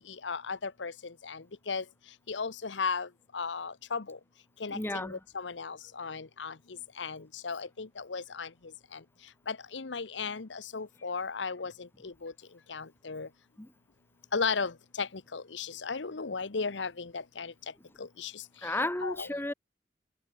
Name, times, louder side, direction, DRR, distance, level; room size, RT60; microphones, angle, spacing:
voice 1, 0.2-0.9 1.2-1.8 2.3-3.1 3.3-4.2 4.6-6.5 7.0-8.5 8.9-9.0 9.5-11.7 12.0-12.3 12.7-13.3 14.3-14.7 15.0-17.5 18.0-18.3 19.0-19.3, left 5 dB, 85° left, 1.0 m, -35 dB
voice 2, 4.7-5.2 13.6-13.7 18.6-19.5, left 1 dB, 15° left, 1.1 m, -33 dB
head